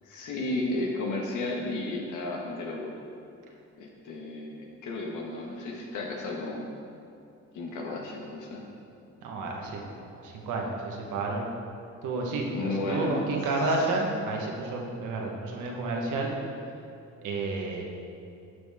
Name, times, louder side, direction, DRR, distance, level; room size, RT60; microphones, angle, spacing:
voice 1, 0.0-2.9 3.8-6.7 7.5-8.6 12.5-13.3, left 2 dB, 80° left, -1 dB, 1.7 m, -33 dB
voice 2, 9.2-11.4 12.0-16.3 17.2-17.8, right 2 dB, 85° right, 0 dB, 1.4 m, -31 dB
11.5 x 6.3 x 3.6 m, 2.5 s
cardioid pair, 90°, 30 cm